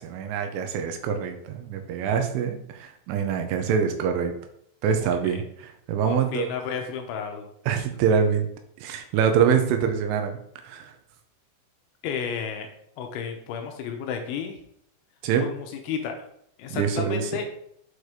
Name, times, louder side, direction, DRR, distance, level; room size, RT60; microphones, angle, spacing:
voice 1, 0.0-4.3 4.8-6.5 7.7-8.5 8.8-10.4 10.6-10.9 15.2-15.4 16.7-17.2, right 7 dB, 80° right, 6 dB, 3.2 m, -25 dB
voice 2, 5.0-5.4 6.0-7.5 12.0-12.7 13.0-14.6 15.4-16.2 16.6-17.5, left 7 dB, 80° left, 4 dB, 3.1 m, -32 dB
8.1 x 4.6 x 4.9 m, 0.69 s
omnidirectional pair, 5.8 m